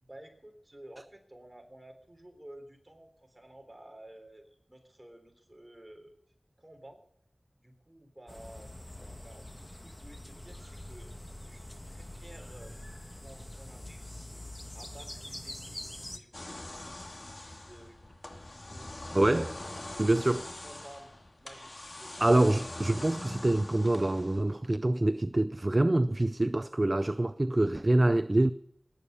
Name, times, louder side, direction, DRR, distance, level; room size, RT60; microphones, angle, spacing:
voice 1, 0.0-6.2 6.6-7.0 7.6-8.7 9.2-11.1 11.4-12.8 13.2-14.5 14.7-15.9 16.1-18.0 18.7-19.1 19.4-22.2, right 1 dB, 25° right, 3.7 m, -53 dB
sound 1, 8.3-16.2, left 1 dB, 20° left, 1.5 m, -45 dB
sound 2, 16.3-24.6, left 1 dB, 55° left, 2.4 m, -43 dB
voice 2, 19.1-19.6 20.0-20.5 22.2-28.5, right 1 dB, 40° right, 0.5 m, -26 dB
18.5 x 8.9 x 6.7 m
wide cardioid pair, 50°, 0 cm